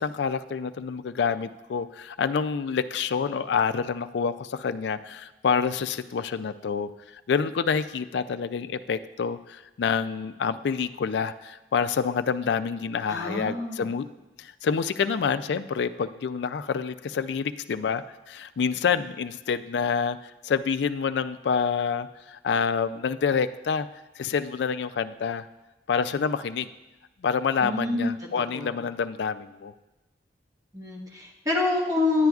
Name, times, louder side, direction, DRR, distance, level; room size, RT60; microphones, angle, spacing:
voice 1, 0.0-6.9 7.3-14.1 14.4-20.2 20.4-23.9 24.2-25.5 25.9-26.7 27.2-29.7, left 6 dB, 65° left, 13 dB, 0.3 m, -27 dB
voice 2, 13.1-13.9 27.6-28.7 30.7-32.3, left 2 dB, 20° right, -2 dB, 1.3 m, -27 dB
10.0 x 9.1 x 2.4 m, 1.0 s
head